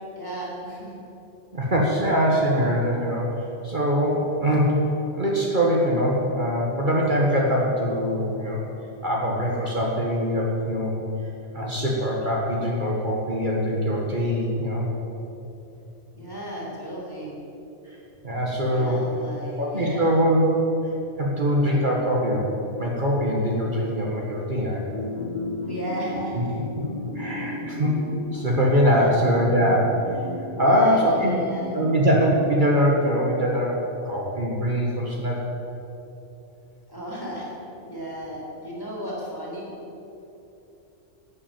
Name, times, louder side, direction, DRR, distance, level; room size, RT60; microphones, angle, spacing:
voice 1, 0.2-0.9 16.1-17.3 18.7-20.2 25.7-26.6 28.8-29.2 30.6-31.7 36.9-37.5 37.8-39.7, equal, 20° left, -5 dB, 3.8 m, -34 dB
voice 2, 1.5-3.3 3.6-8.6 9.0-10.9 11.5-14.9 18.2-19.0 19.6-20.5 21.2-22.5 22.8-24.9 26.4-26.5 26.8-26.9 27.2-28.0 28.3-30.0 30.6-31.3 31.7-35.4, equal, 45° right, -3 dB, 1.8 m, -22 dB
sound 1, 24.9-33.7, left 2 dB, 40° left, 1.5 m, -35 dB
11.5 x 8.5 x 8.9 m, 2.9 s
omnidirectional pair, 1.2 m